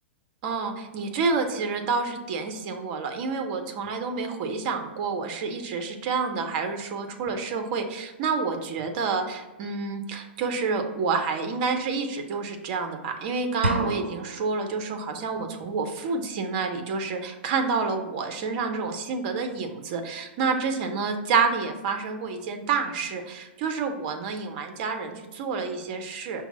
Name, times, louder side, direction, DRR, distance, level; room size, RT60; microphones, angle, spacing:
voice 1, 0.4-26.4, right 4 dB, 45° right, 5 dB, 0.6 m, -28 dB
sound 1, 13.6-14.6, right 1 dB, 85° right, 0.5 m, -28 dB
5.7 x 2.0 x 4.1 m, 1.1 s
figure-of-eight pair, 105°, 6 cm